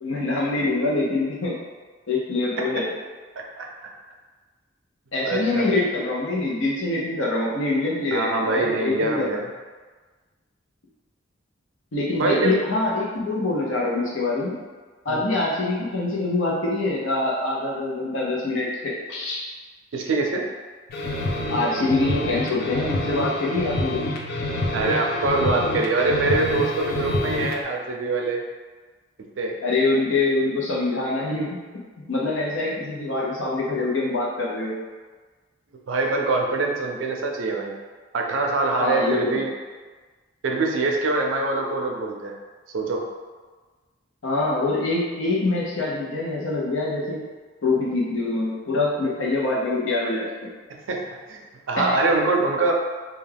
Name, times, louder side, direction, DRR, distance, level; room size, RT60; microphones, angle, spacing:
voice 1, 0.0-1.6 2.1-2.9 5.1-9.4 11.9-14.6 15.0-19.4 21.5-24.1 29.6-31.6 32.1-34.8 38.8-39.4 44.2-47.2 47.6-50.3 51.8-52.0, left 2 dB, 85° left, -4 dB, 0.7 m, -24 dB
voice 2, 3.4-3.7 5.2-5.7 8.1-9.4 12.2-12.6 15.1-15.3 19.9-20.5 24.7-28.4 29.4-29.6 35.9-37.8 38.1-39.5 40.4-42.4 42.7-43.0 50.9-51.0 51.3-52.7, right 3 dB, 85° right, 1 dB, 0.4 m, -24 dB
sound 1, 20.9-27.6, left 1 dB, 55° left, 0.4 m, -27 dB
2.3 x 2.2 x 3.3 m, 1.4 s
head